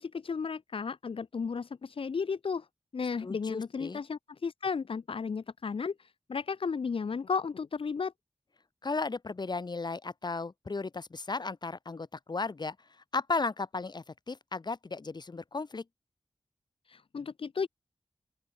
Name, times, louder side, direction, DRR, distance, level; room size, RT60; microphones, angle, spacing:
voice 1, 0.0-2.7 2.9-8.1 16.9-17.7, left 5 dB, 80° left, 1.6 m, -34 dB
voice 2, 3.2-4.0 8.8-12.8 13.1-15.8, left 3 dB, 50° left, 4.2 m, -35 dB
open air
wide cardioid pair, 90°, 9 cm